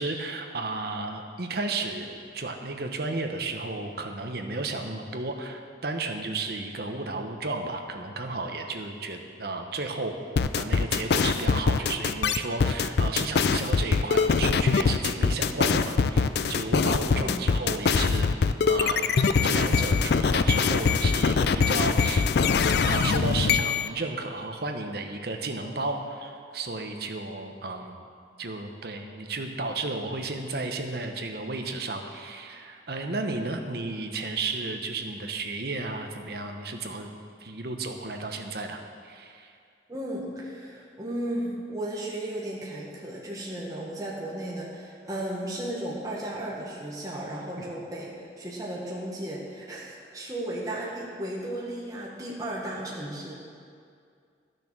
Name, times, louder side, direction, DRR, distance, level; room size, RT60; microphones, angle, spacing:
voice 1, 0.0-10.2 10.6-18.3 18.7-22.3 22.8-28.0 28.4-37.1 37.4-39.5, right 3 dB, 55° right, 4 dB, 0.9 m, -33 dB
sound 1, 10.4-23.9, left 5 dB, 60° left, 0.4 m, -23 dB
voice 2, 17.2-17.5 39.9-53.3, right 1 dB, 20° right, -5 dB, 1.4 m, -35 dB
12.5 x 6.8 x 6.1 m, 2.3 s
head